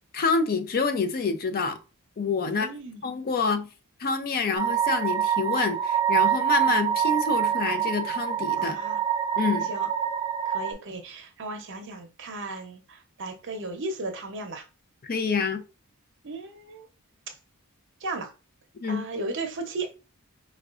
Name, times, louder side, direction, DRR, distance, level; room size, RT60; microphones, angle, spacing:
voice 1, 0.1-1.8 2.2-2.7 3.0-3.7 4.0-8.8 9.4-9.7 15.0-15.6 18.8-19.0, left 4 dB, 45° left, 0.5 m, -27 dB
voice 2, 2.4-3.0 8.6-9.0 9.6-9.9 10.4-14.7 16.2-16.9 17.3-17.4 18.0-18.3 18.8-19.9, right 2 dB, 55° right, 0.7 m, -35 dB
sound 1, 4.5-10.7, right 9 dB, 20° right, 0.4 m, -25 dB
4.7 x 2.2 x 2.4 m
head